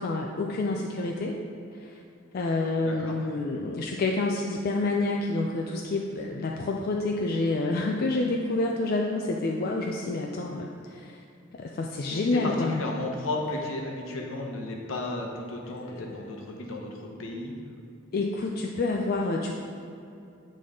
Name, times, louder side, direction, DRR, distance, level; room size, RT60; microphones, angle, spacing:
voice 1, 0.0-1.4 1.8-2.0 2.3-11.2 11.5-12.8 15.8-16.3 18.1-19.5, left 2 dB, 50° left, 0 dB, 0.4 m, -28 dB
voice 2, 2.8-3.1 12.1-17.6, left 2 dB, 70° left, 0 dB, 0.9 m, -34 dB
8.5 x 3.9 x 3.7 m, 2.6 s
head